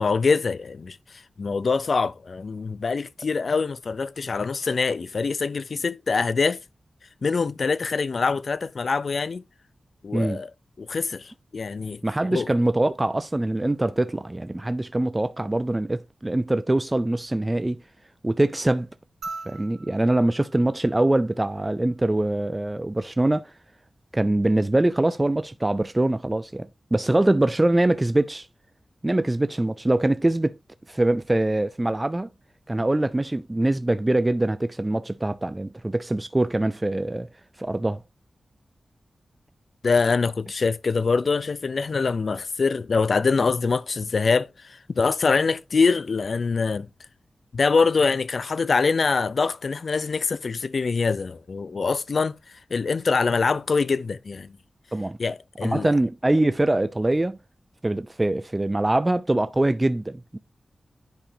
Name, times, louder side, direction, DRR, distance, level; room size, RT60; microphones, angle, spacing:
voice 1, 0.0-6.6 7.2-9.4 10.0-10.5 10.8-12.0 12.3-12.5 39.8-46.9 47.5-52.4 52.7-54.5 55.2-55.9, left 4 dB, 60° left, 0.5 m, -24 dB
voice 2, 12.0-17.8 18.2-18.9 19.5-23.5 24.1-28.5 29.0-30.5 30.9-32.3 32.7-37.3 37.6-38.0 54.9-55.2 55.6-57.4 57.8-60.4, right 1 dB, 20° right, 0.4 m, -23 dB
sound 1, 19.2-21.8 23.4-23.5, right 3 dB, 90° right, 1.9 m, -42 dB
10.0 x 5.0 x 2.7 m
wide cardioid pair, 100°, 0 cm